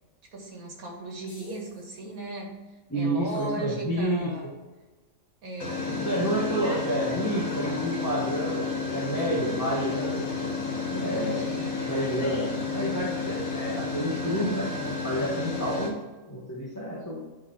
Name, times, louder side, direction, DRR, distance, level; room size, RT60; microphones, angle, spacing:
voice 1, 0.3-4.5 5.4-6.1 10.9-11.9, right 2 dB, 80° right, 0 dB, 2.1 m, -38 dB
sound 1, 1.3-1.7 3.4-3.5 5.6-15.9, left 4 dB, 75° left, 1.9 m, -31 dB
voice 2, 2.9-4.3 5.8-10.6 11.0-11.5 11.8-16.0 16.3-17.2, right 1 dB, 15° left, -6 dB, 1.0 m, -29 dB
9.3 x 3.7 x 4.3 m, 1.2 s
omnidirectional pair, 1.5 m